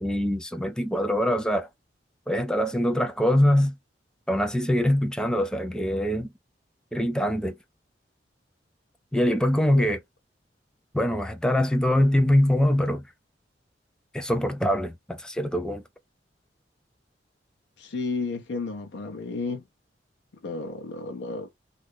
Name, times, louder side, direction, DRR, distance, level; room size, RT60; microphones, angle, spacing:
voice 1, 0.0-1.7 2.3-3.7 4.3-6.3 6.9-7.5 9.1-10.0 10.9-13.0 14.1-15.8, left 1 dB, 5° left, 0.4 m, -23 dB
voice 2, 17.8-19.6 20.4-21.5, left 3 dB, 85° left, 0.6 m, -32 dB
2.7 x 2.4 x 3.5 m
head